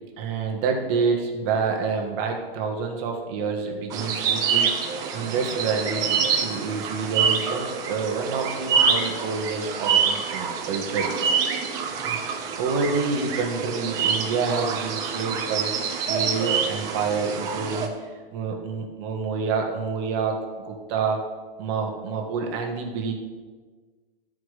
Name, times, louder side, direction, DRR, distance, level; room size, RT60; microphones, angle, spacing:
voice 1, 0.2-11.2 12.0-15.7 16.1-20.4 20.6-21.2 21.6-23.1, right 5 dB, 30° right, 2 dB, 1.3 m, -28 dB
sound 1, 3.9-17.9, right 6 dB, 15° right, 0.5 m, -26 dB
12.0 x 5.0 x 6.4 m, 1.4 s
hypercardioid pair, 165°, 29 cm